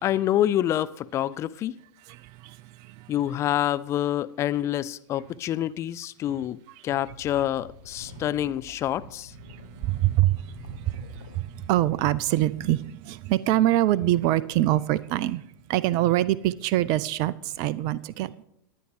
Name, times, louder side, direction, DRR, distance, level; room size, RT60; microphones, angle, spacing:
voice 1, 0.0-1.7 3.1-6.6 6.8-9.3, left 12 dB, 30° left, 0.3 m, -27 dB
voice 2, 2.1-3.1 8.1-8.5 9.5-15.4 15.7-18.4, right 14 dB, 40° right, 0.4 m, -25 dB
sound 1, 7.0-12.9, left 6 dB, 70° left, 0.9 m, -47 dB
19.5 x 9.2 x 3.2 m
figure-of-eight pair, 90°, 10 cm